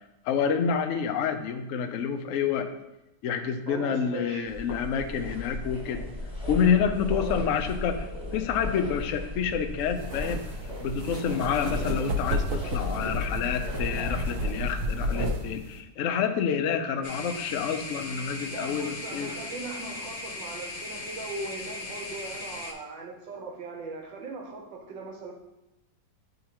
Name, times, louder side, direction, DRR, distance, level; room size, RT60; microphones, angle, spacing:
voice 1, 0.2-2.7 3.2-6.0 6.5-10.4 10.8-19.3, left 7 dB, 85° left, 6 dB, 0.6 m, -28 dB
voice 2, 3.7-4.5 7.1-7.5 18.4-25.3, right 3 dB, 85° right, 2 dB, 1.6 m, -39 dB
sound 1, 4.4-15.3, left 1 dB, 5° right, 0.9 m, -35 dB
sound 2, 10.0-15.8, equal, 60° right, 0.9 m, -32 dB
sound 3, 17.0-22.7, left 2 dB, 50° left, 0.9 m, -38 dB
8.5 x 3.9 x 2.9 m, 0.92 s
omnidirectional pair, 1.9 m